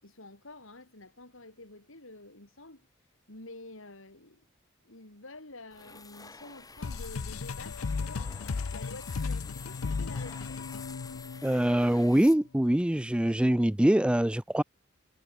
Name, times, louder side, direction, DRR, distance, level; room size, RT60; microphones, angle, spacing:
voice 1, 0.0-2.8 3.3-4.4 4.8-8.3 8.7-10.9, left 2 dB, 65° left, 5.0 m, -49 dB
sound 1, 5.7-12.8, left 4 dB, 20° left, 7.9 m, -50 dB
sound 2, 6.8-12.1, left 4 dB, 80° left, 0.6 m, -35 dB
voice 2, 11.4-14.6, right 1 dB, 5° right, 0.4 m, -24 dB
head